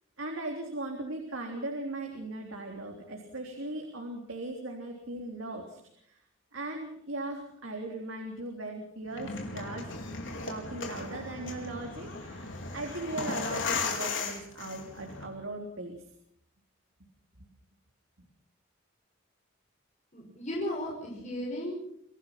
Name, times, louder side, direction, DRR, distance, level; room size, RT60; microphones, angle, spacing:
voice 1, 0.2-6.2 6.5-9.9 10.5-15.9, right 2 dB, 90° right, 1 dB, 3.7 m, -38 dB
sound 1, 9.1-15.2, left 4 dB, 70° left, 4.7 m, -36 dB
voice 2, 20.1-21.7, left 1 dB, 35° left, -2 dB, 6.2 m, -35 dB
27.0 x 18.0 x 6.0 m, 0.71 s
head